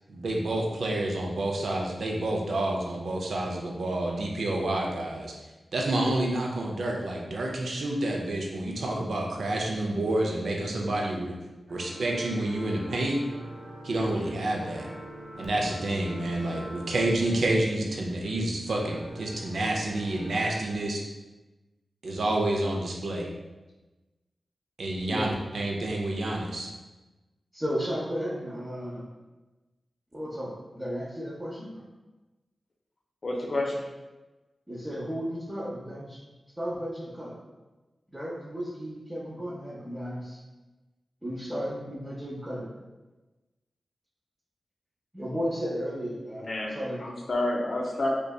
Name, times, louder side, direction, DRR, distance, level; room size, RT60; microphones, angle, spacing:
voice 1, 0.1-5.3 5.7-11.3 11.7-13.2 13.8-14.9 15.4-21.0 22.0-23.3 24.8-26.7, right 1 dB, 75° right, 0 dB, 0.4 m, -29 dB
sound 1, 11.7-17.8 18.7-20.6, right 1 dB, 40° right, 0.9 m, -43 dB
voice 2, 27.5-29.0 30.1-31.8 34.7-36.2 36.6-37.3 38.1-40.4 41.2-42.7 45.1-46.4 46.7-47.0, equal, 15° right, -8 dB, 0.6 m, -34 dB
voice 3, 33.2-33.8 46.4-46.7 47.0-48.1, left 2 dB, 60° left, 0 dB, 0.5 m, -29 dB
2.6 x 2.2 x 2.2 m, 1.1 s
cardioid pair, 45°, 0 cm